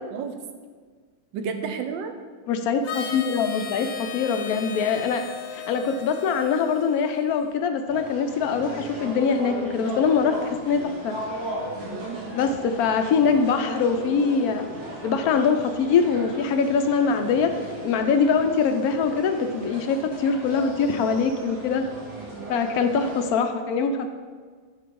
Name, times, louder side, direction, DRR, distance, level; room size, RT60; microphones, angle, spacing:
voice 1, 1.3-2.1 11.8-12.2 22.2-22.7, right 6 dB, 70° right, 7 dB, 1.3 m, -33 dB
voice 2, 2.5-5.3 5.5-11.2 12.3-14.6 15.0-17.5 17.8-21.9 22.5-24.1, left 5 dB, 70° left, 7 dB, 0.9 m, -23 dB
Harmonica, 2.8-7.6, left 6 dB, 85° left, 1.9 m, -37 dB
sound 1, 7.9-23.3, right 1 dB, 85° right, 3.6 m, -37 dB
8.7 x 4.5 x 6.9 m, 1.6 s
omnidirectional pair, 2.3 m